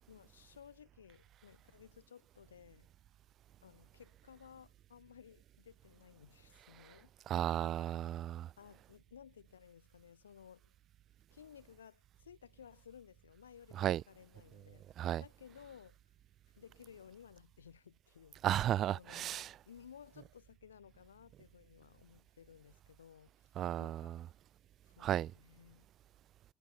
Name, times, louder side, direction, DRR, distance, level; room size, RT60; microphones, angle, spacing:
voice 1, 0.1-2.9 3.6-7.5 8.6-10.7 11.3-14.9 15.2-16.0 16.5-18.4 18.9-23.5 23.8-24.2 24.9-25.9, left 8 dB, 90° left, 3.6 m, -58 dB
voice 2, 7.3-8.5 13.8-14.0 15.0-15.2 18.4-19.5 23.6-24.0 25.0-25.3, right 12 dB, 55° right, 0.3 m, -34 dB
hypercardioid pair, 60°, 0 cm